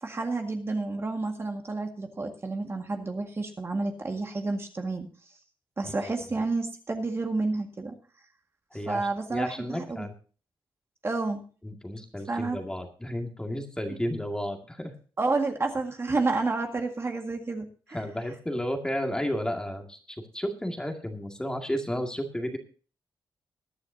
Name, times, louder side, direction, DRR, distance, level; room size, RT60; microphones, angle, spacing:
voice 1, 0.0-5.1 5.8-8.0 8.9-10.1 11.0-11.4 12.3-12.6 15.2-18.0, right 3 dB, 30° right, 3 dB, 1.9 m, -30 dB
voice 2, 8.7-10.1 11.6-14.9 17.9-20.0 20.3-22.6, equal, 10° left, 3 dB, 2.1 m, -32 dB
22.0 x 9.7 x 2.8 m, 0.38 s
wide cardioid pair, 120°, 9 cm